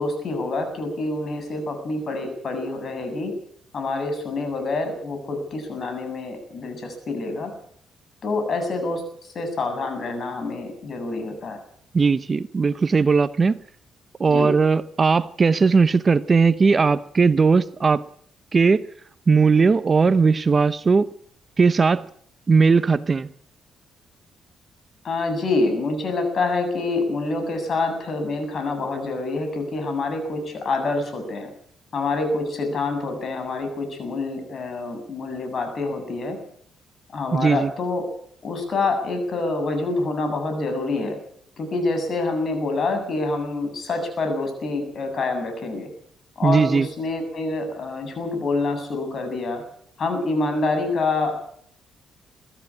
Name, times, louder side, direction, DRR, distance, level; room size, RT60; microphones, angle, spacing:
voice 1, 0.0-3.3 3.7-7.5 8.2-11.6 14.2-14.5 25.0-31.5 31.9-36.4 37.1-38.0 38.4-41.2 41.6-45.9 46.4-49.6 50.0-51.4, left 3 dB, 50° left, 7.8 m, -26 dB
voice 2, 11.9-13.6 14.2-18.0 18.5-18.8 19.3-21.1 21.6-22.0 22.5-23.3 37.3-37.7 46.4-46.9, right 4 dB, 35° right, 0.9 m, -18 dB
23.5 x 14.5 x 8.7 m
cardioid pair, 90°, 0 cm